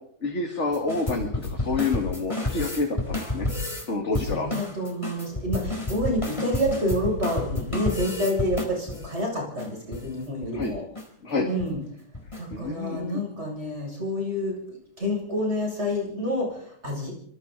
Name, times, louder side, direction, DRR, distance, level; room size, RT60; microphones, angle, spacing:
voice 1, 0.2-3.5 3.8-4.5 10.5-10.7 11.2-11.5 12.5-13.2, left 3 dB, 40° left, 2 dB, 2.7 m, -28 dB
sound 1, 0.7-3.9 4.1-9.1 9.6-9.7 9.9-10.1 10.4-10.7 10.9-11.0 11.5-11.7 12.1-12.6, left 2 dB, 15° left, 4.0 m, -30 dB
voice 2, 4.2-10.8 11.4-11.8 12.4-17.1, equal, 35° right, -1 dB, 8.0 m, -28 dB
26.0 x 24.0 x 4.2 m, 0.67 s
omnidirectional pair, 1.9 m